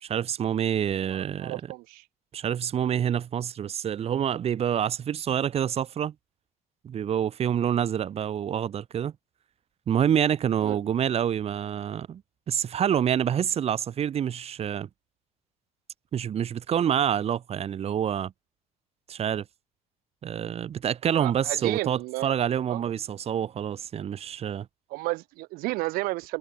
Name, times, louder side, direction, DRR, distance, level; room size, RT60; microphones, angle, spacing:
voice 1, 0.0-1.6 2.3-6.1 6.8-9.1 9.9-12.2 12.5-14.9 16.1-18.3 19.1-19.4 20.2-24.7, right 9 dB, 45° right, 2.7 m, -27 dB
voice 2, 1.1-2.0 10.6-10.8 21.1-22.3 22.7-22.8 24.9-26.4, right 22 dB, 85° right, 2.4 m, -32 dB
open air
cardioid pair, 120°, 15 cm